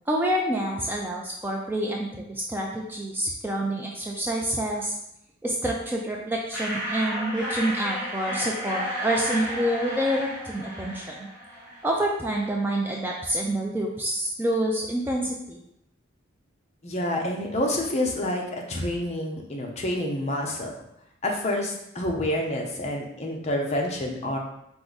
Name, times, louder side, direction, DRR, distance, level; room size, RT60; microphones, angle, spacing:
voice 1, 0.1-5.0 5.4-11.3 11.8-15.6, right 1 dB, 10° right, -1 dB, 0.3 m, -27 dB
sound 1, 6.5-12.0, equal, 10° left, 1.5 m, -32 dB
voice 2, 16.8-20.7 21.2-24.4, left 1 dB, 35° left, 0 dB, 0.6 m, -28 dB
4.7 x 2.6 x 3.9 m, 0.79 s
head